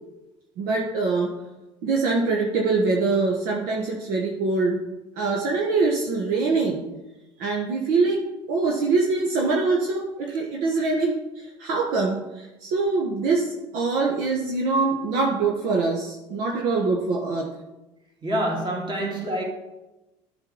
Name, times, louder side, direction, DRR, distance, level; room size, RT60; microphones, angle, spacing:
voice 1, 0.6-1.3 1.8-4.9 5.2-6.8 7.4-8.2 8.5-17.5, right 3 dB, 60° right, 0 dB, 1.1 m, -24 dB
voice 2, 18.2-19.4, right 1 dB, 30° right, -1 dB, 2.5 m, -26 dB
11.0 x 5.3 x 3.9 m, 1.0 s
hypercardioid pair, 65°, 16 cm